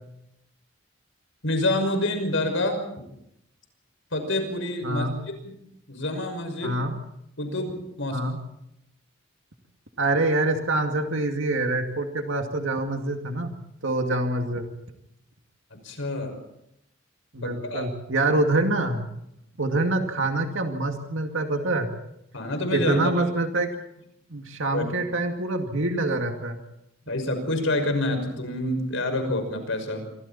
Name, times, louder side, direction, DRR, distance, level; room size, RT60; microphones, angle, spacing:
voice 1, 1.4-2.8 4.1-5.1 5.4-5.6 5.9-6.8 7.4-8.3 15.7-16.3 17.4-17.9 22.3-23.1 24.7-24.8 27.1-30.1, left 1 dB, 65° left, 6 dB, 5.8 m, -27 dB
voice 2, 4.8-5.1 6.6-6.9 8.1-8.4 10.0-13.6 13.8-14.7 17.3-19.0 19.6-21.9 22.7-23.7 24.3-26.6, right 2 dB, 65° right, 4 dB, 2.3 m, -25 dB
28.0 x 24.0 x 4.3 m, 0.79 s
head